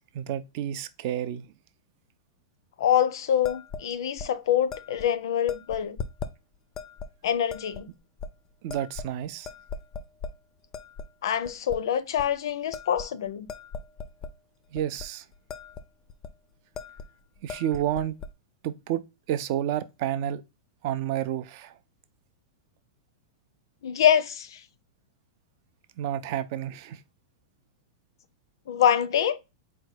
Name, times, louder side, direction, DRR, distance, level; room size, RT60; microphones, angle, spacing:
voice 1, 0.1-1.5 8.6-9.5 14.7-15.3 17.4-18.2 18.6-19.0 19.3-20.4 20.8-21.8 26.0-27.0, right 11 dB, 40° right, 0.4 m, -30 dB
voice 2, 2.8-6.0 7.2-7.9 11.2-13.5 23.8-24.6 28.7-29.4, left 9 dB, 75° left, 0.5 m, -25 dB
sound 1, 3.4-3.9 4.2-4.3 4.7-5.1 5.5-6.3 6.8-7.1 7.5-7.8 8.2-8.3 8.7-9.2 9.4-10.3 10.7-11.1 11.4-11.8 12.2-12.3 12.7-14.3 14.8-15.1 15.3-15.8 16.1-16.3 16.8-17.1 17.4-18.3, left 5 dB, 20° left, 0.4 m, -39 dB
4.3 x 2.2 x 4.6 m
supercardioid pair, 165°, 2 cm